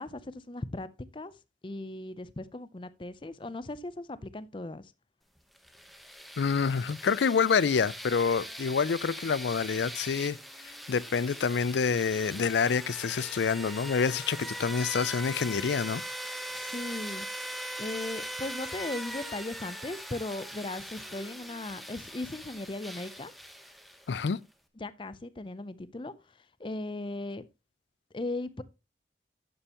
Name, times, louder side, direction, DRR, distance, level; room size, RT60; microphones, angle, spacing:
voice 1, 0.0-1.3 1.6-4.9 16.5-17.3 17.8-23.3 24.8-26.1 26.6-27.4 28.1-28.6, left 2 dB, 30° left, 0.6 m, -37 dB
sound 1, 5.6-24.2, equal, ahead, 1.0 m, -41 dB
voice 2, 6.4-10.4 10.6-16.0 24.1-24.4, left 6 dB, 75° left, 0.4 m, -27 dB
11.0 x 8.9 x 2.9 m
head